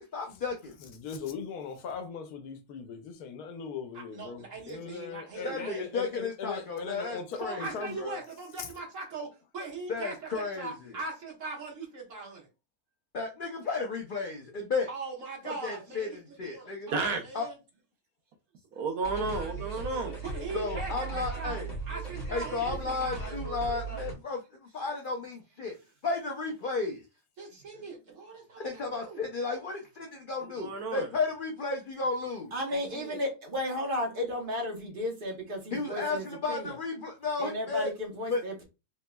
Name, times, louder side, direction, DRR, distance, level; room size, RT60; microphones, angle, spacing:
voice 1, 0.0-0.7 5.4-7.7 8.0-8.2 9.9-10.7 13.1-14.9 15.6-16.1 16.4-16.9 17.3-17.5 20.5-21.7 22.3-24.4 24.7-25.7 26.0-27.0 28.6-32.5 35.7-37.9 38.3-38.4, left 4 dB, 65° left, 0.5 m, -33 dB
voice 2, 0.8-8.0, left 6 dB, 85° left, 1.2 m, -39 dB
voice 3, 3.9-5.9 7.4-9.3 9.5-12.5 14.9-17.6 20.2-21.6 21.9-23.4 27.4-29.2 32.7-33.2, right 3 dB, 55° right, 1.5 m, -40 dB
voice 4, 16.9-17.2 18.7-20.2 30.4-31.1, right 4 dB, 80° right, 1.2 m, -32 dB
sound 1, 19.0-24.1, right 4 dB, 30° left, 1.4 m, -37 dB
voice 5, 32.5-36.7 37.4-38.6, left 1 dB, 40° right, 1.0 m, -34 dB
3.4 x 2.9 x 2.2 m
omnidirectional pair, 1.6 m